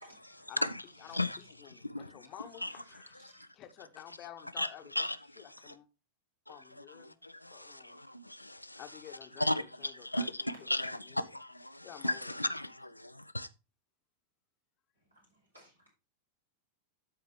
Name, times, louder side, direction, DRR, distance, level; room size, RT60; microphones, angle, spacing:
voice 1, 0.0-0.5 1.1-1.2 1.9-2.3 2.6-3.4 14.9-15.9, right 1 dB, 85° right, 4.2 m, -61 dB
voice 2, 1.0-3.2 3.5-4.9 5.4-5.9 6.5-7.2 7.5-8.0 8.8-10.3 10.6-11.2 11.8-12.5, left 11 dB, 35° left, 1.0 m, -51 dB
voice 3, 5.0-5.7 7.0-8.8 9.4-13.5, left 1 dB, 85° left, 0.5 m, -35 dB
12.5 x 4.6 x 3.2 m
figure-of-eight pair, 90°, 0 cm